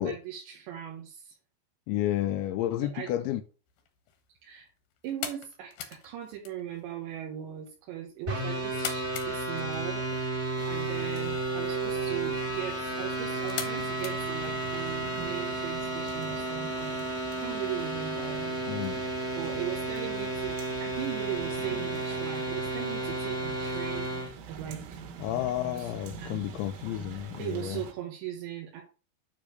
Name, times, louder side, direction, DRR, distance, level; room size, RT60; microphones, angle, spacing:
voice 1, 0.0-1.4 2.8-3.1 4.4-4.7 5.0-10.3 10.7-17.1 17.3-25.0 25.7-25.9 26.2-26.3 27.1-28.8, right 11 dB, 70° right, 3.2 m, -39 dB
voice 2, 1.9-3.4 18.7-19.1 25.2-27.8, left 12 dB, 90° left, 2.6 m, -31 dB
sound 1, 3.7-15.1, left 9 dB, 70° left, 2.3 m, -44 dB
sound 2, 8.3-24.3, right 2 dB, 25° right, 1.5 m, -32 dB
sound 3, 10.6-27.9, right 6 dB, 90° right, 4.2 m, -46 dB
9.7 x 3.4 x 6.5 m
omnidirectional pair, 5.9 m